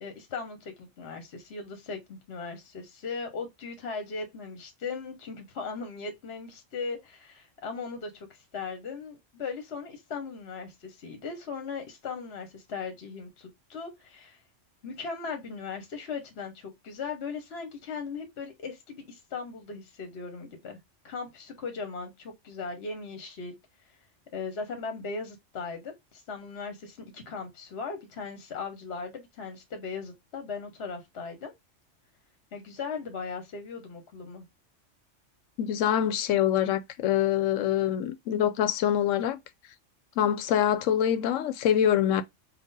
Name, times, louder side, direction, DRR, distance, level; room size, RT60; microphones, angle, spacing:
voice 1, 0.0-14.4 14.8-20.8 21.0-23.6 24.3-31.5 32.5-34.4, left 4 dB, 60° left, 1.1 m, -38 dB
voice 2, 35.6-39.4 40.2-42.2, left 10 dB, 85° left, 1.0 m, -25 dB
3.7 x 2.5 x 3.9 m
omnidirectional pair, 1.3 m